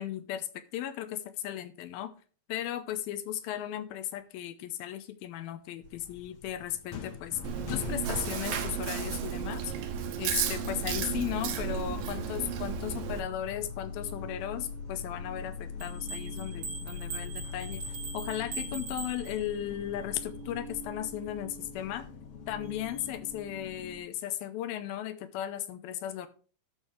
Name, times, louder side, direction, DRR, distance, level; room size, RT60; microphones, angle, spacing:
voice 1, 0.0-2.1 2.5-7.4 7.7-9.7 10.2-17.8 18.1-22.1 22.5-26.3, left 11 dB, 85° left, 11 dB, 2.5 m, -36 dB
sound 1, 5.8-24.0, left 5 dB, 65° left, 1.5 m, -42 dB
Chewing mastication, 7.4-13.2, right 8 dB, 75° right, 2.6 m, -33 dB
sound 2, 15.8-19.8, right 5 dB, 55° right, 2.3 m, -41 dB
12.0 x 6.5 x 3.3 m, 0.39 s
omnidirectional pair, 4.3 m